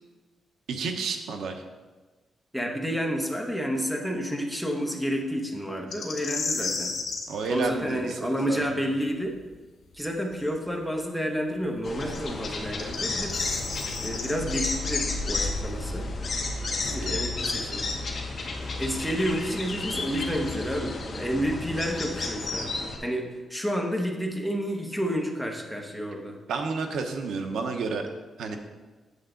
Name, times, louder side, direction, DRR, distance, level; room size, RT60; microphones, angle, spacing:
voice 1, 0.7-1.6 7.3-8.6 16.8-17.2 18.4-18.5 26.5-28.0 28.4-28.6, right 4 dB, 80° right, 5 dB, 0.9 m, -31 dB
voice 2, 2.5-7.0 7.5-9.4 9.9-13.4 14.0-16.1 16.9-17.9 18.6-22.7 23.0-26.4, equal, ahead, 1 dB, 0.9 m, -30 dB
sound 1, 5.9-7.3 10.4-10.5 12.6-14.3, left 4 dB, 60° left, 1.8 m, -32 dB
sound 2, 11.8-23.0, left 3 dB, 35° left, 1.0 m, -32 dB
8.1 x 7.9 x 3.8 m, 1.3 s
wide cardioid pair, 180°, 0 cm